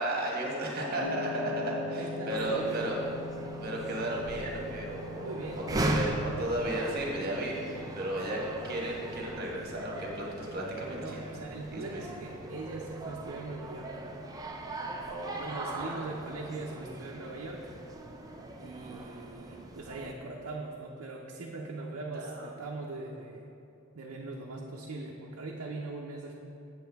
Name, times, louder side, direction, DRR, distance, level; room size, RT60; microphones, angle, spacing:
voice 1, 0.0-3.0 3.6-5.4 5.7-11.2 11.7-12.0 15.1-16.0 22.1-22.5, right 1 dB, 45° right, -2 dB, 1.2 m, -34 dB
sound 1, 1.0-19.3, left 2 dB, 85° left, 0.8 m, -44 dB
voice 2, 1.9-2.9 5.2-6.0 11.0-14.0 15.4-17.7 18.6-23.5 23.9-26.3, right 2 dB, 80° right, -1 dB, 0.6 m, -41 dB
sound 2, 2.3-20.1, right 2 dB, 15° right, 0.4 m, -39 dB
7.6 x 7.6 x 3.5 m, 2.7 s
head